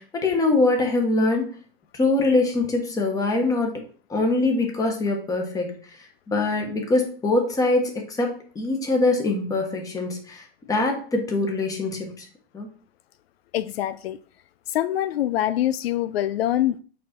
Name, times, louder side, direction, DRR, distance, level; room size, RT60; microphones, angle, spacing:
voice 1, 0.0-1.5 1.9-3.8 4.1-5.8 6.3-12.2 12.5-12.7, left 2 dB, 10° left, 1.4 m, -23 dB
voice 2, 13.5-14.2 14.7-16.8, left 12 dB, 80° left, 0.6 m, -24 dB
8.3 x 4.3 x 4.3 m
supercardioid pair, 160°, 30 cm